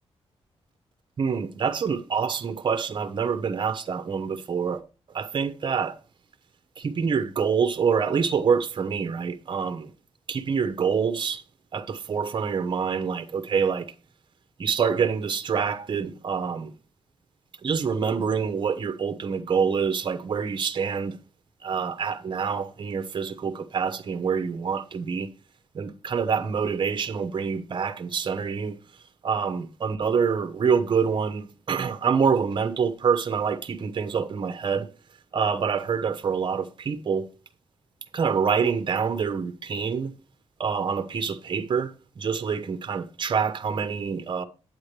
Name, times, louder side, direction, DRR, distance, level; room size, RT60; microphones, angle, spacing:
voice 1, 1.2-4.8 5.1-6.0 6.8-9.9 10.3-11.4 11.7-13.9 14.6-16.7 17.6-21.2 21.6-25.3 25.7-28.8 29.2-34.9 35.3-37.3 38.1-40.1 40.6-44.4, right 6 dB, 45° right, 1.0 m, -26 dB
10.5 x 8.8 x 3.3 m
wide cardioid pair, 150°, 11 cm